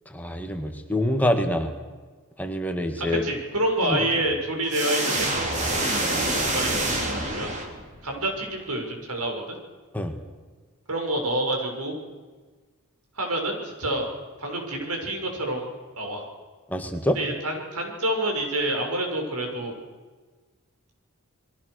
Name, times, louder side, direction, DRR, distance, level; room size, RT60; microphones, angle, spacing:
voice 1, 0.1-1.7 2.4-3.2 3.9-4.0 9.9-10.1 16.7-17.2, left 1 dB, 5° left, 5 dB, 1.9 m, -25 dB
voice 2, 3.0-7.5 8.0-9.5 10.9-12.0 13.1-14.1 14.4-15.7 16.0-16.3 17.1-19.7, right 1 dB, 90° right, 2 dB, 6.6 m, -28 dB
sound 1, 4.7-8.1, right 2 dB, 35° right, 3.8 m, -26 dB
29.5 x 22.0 x 6.6 m, 1.4 s
head